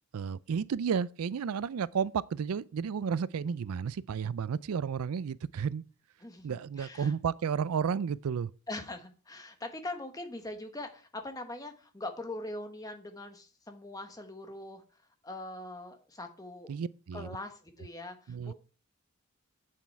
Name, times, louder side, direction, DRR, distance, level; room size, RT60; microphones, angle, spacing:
voice 1, 0.1-5.8 6.4-8.5 16.7-17.3 18.3-18.5, right 6 dB, 80° right, 0.4 m, -32 dB
voice 2, 6.2-7.1 8.7-16.7 17.1-18.5, left 2 dB, 15° left, 1.1 m, -42 dB
8.4 x 7.3 x 4.6 m
head